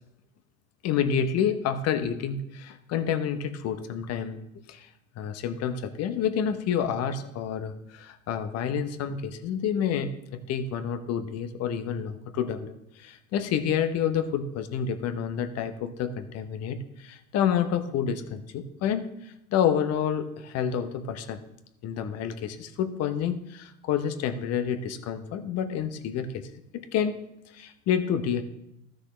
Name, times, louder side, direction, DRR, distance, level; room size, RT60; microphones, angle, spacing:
voice 1, 0.8-4.4 4.7-4.9 5.2-10.1 10.5-19.1 19.5-21.4 21.8-26.5 26.9-27.2 27.5-28.4, left 8 dB, 35° left, 9 dB, 0.9 m, -28 dB
15.0 x 6.4 x 3.3 m, 0.82 s
figure-of-eight pair, 75°, 41 cm